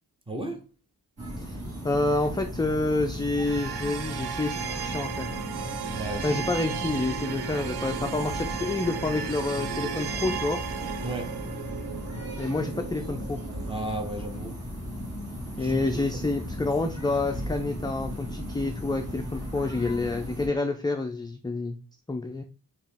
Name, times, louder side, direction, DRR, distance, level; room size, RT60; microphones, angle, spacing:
voice 1, 0.3-0.6 5.9-6.4 11.0-11.3 13.7-14.6 15.6-16.0, right 2 dB, 15° right, 0.9 m, -34 dB
sound 1, 1.2-20.5, equal, 40° right, 2.0 m, -36 dB
voice 2, 1.8-5.3 6.2-10.6 12.4-13.4 15.6-21.8 22.1-22.4, left 2 dB, 10° left, 0.3 m, -28 dB
sound 2, 3.4-14.5, right 8 dB, 80° right, 0.5 m, -35 dB
4.7 x 2.9 x 3.4 m
wide cardioid pair, 140°, 38 cm